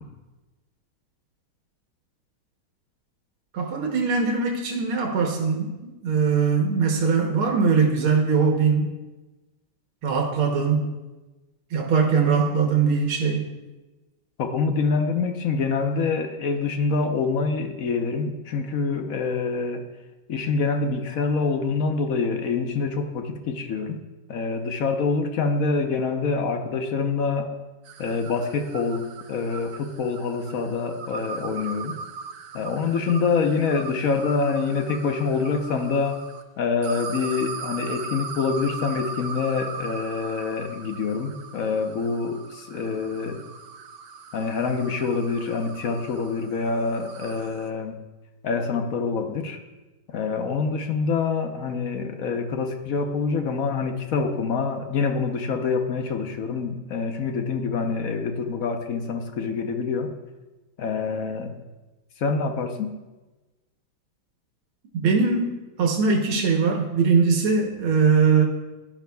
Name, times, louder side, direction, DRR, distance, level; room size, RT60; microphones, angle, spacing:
voice 1, 3.5-8.9 10.0-10.9 11.7-13.5 64.9-68.4, right 5 dB, 85° right, 1 dB, 1.9 m, -21 dB
voice 2, 14.4-19.9 20.3-24.0 24.3-27.5 28.0-32.0 32.5-36.2 36.6-43.4 44.3-48.0 48.4-49.6 50.1-60.1 60.8-61.5 62.2-62.9, left 4 dB, 60° left, 5 dB, 0.9 m, -26 dB
sound 1, 27.8-36.4 36.8-47.7, right 5 dB, 65° right, 1.3 m, -39 dB
16.5 x 11.0 x 2.3 m, 1.1 s
omnidirectional pair, 2.3 m